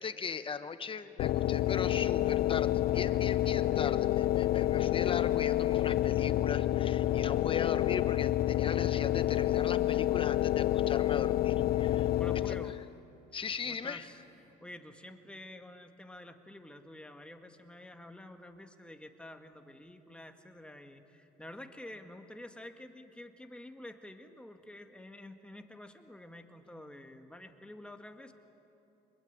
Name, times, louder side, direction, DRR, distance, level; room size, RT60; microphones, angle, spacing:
voice 1, 0.0-12.1 12.5-12.6 13.3-14.1, left 6 dB, 30° left, 11 dB, 1.1 m, -39 dB
sound 1, 1.2-12.9, left 14 dB, 65° left, 0.5 m, -29 dB
voice 2, 12.2-12.8 13.7-28.3, left 1 dB, 5° left, 5 dB, 1.8 m, -49 dB
26.0 x 21.0 x 9.4 m, 3.0 s
cardioid pair, 110°, 17 cm